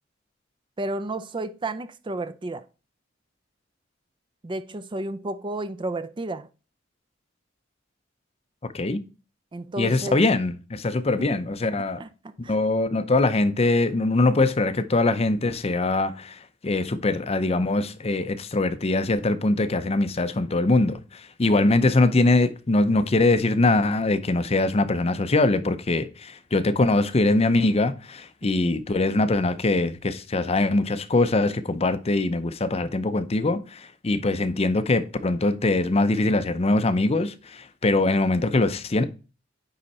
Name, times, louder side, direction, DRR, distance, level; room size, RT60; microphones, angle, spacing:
voice 1, 0.8-2.6 4.4-6.5 9.5-10.2 11.2-11.3 12.0-12.1 12.4-12.5 28.4-28.8, right 2 dB, 25° right, 0.4 m, -32 dB
voice 2, 9.8-12.0 12.4-39.0, left 2 dB, 30° left, 0.6 m, -22 dB
9.7 x 3.8 x 4.2 m
head